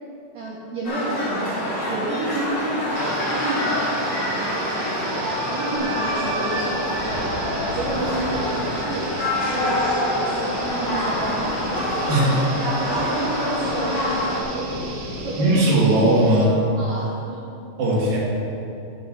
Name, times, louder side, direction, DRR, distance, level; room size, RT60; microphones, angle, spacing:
voice 1, 0.3-14.0 14.3-15.5 16.8-17.4, right 2 dB, 70° right, -6 dB, 2.1 m, -31 dB
sound 1, 0.8-14.4, left 1 dB, 40° left, 2.7 m, -25 dB
sound 2, 3.0-16.7, right 2 dB, 90° right, 3.9 m, -36 dB
sound 3, 5.8-15.4, left 2 dB, 70° left, 3.6 m, -38 dB
voice 2, 12.1-12.6 15.4-16.7 17.8-18.2, right 1 dB, 55° right, -6 dB, 3.4 m, -18 dB
8.2 x 6.5 x 7.5 m, 2.8 s
omnidirectional pair, 5.6 m